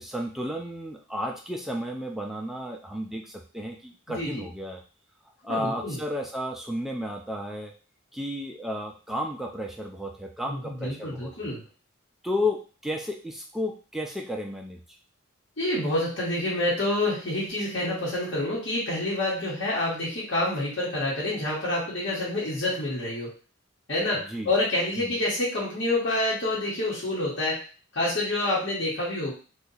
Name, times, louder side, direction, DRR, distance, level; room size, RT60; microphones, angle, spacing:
voice 1, 0.0-4.8 5.4-7.7 8.1-11.5 12.2-14.8 24.1-24.5 25.0-25.2, left 1 dB, ahead, 1 dB, 0.3 m, -33 dB
voice 2, 4.1-4.4 5.5-6.0 10.5-11.6 15.6-23.3 23.9-27.6 27.9-29.3, left 1 dB, 60° left, -7 dB, 1.1 m, -28 dB
2.7 x 2.4 x 3.9 m, 0.36 s
head